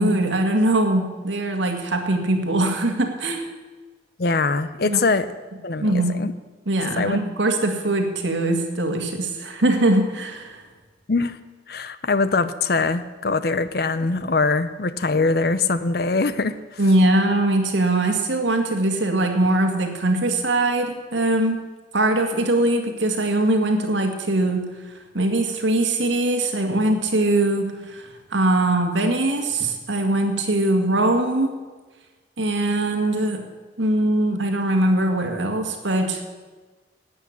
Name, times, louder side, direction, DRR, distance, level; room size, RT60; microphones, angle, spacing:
voice 1, 0.0-3.5 4.8-5.0 5.8-6.1 6.7-10.6 16.8-21.6 21.9-24.6 25.1-31.5 32.4-33.4 33.8-36.2, right 1 dB, 80° right, 4 dB, 2.0 m, -21 dB
voice 2, 4.2-5.3 5.6-6.3 7.0-7.2 11.1-11.4 11.7-16.8, left 3 dB, 55° left, 13 dB, 0.6 m, -22 dB
12.0 x 8.7 x 8.5 m, 1.3 s
head